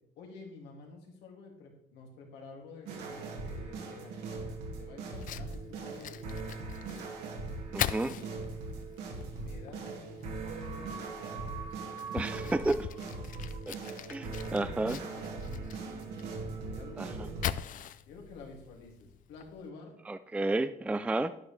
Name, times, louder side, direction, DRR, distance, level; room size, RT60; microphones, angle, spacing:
voice 1, 0.2-6.7 7.6-8.2 9.3-10.2 10.7-11.4 12.3-13.1 14.2-15.4 16.5-19.9, left 3 dB, 85° left, 0 dB, 2.7 m, -51 dB
sound 1, 2.9-17.5, right 3 dB, 90° right, 2.3 m, -40 dB
Fire, 5.1-19.7, left 11 dB, 55° left, 0.5 m, -42 dB
voice 2, 7.7-8.1 12.1-12.8 13.7-13.8 14.1-15.0 17.0-17.3 20.1-21.3, right 2 dB, 5° right, 10 dB, 0.4 m, -31 dB
10.5 x 10.5 x 3.4 m, 0.74 s
cardioid pair, 110°, 17 cm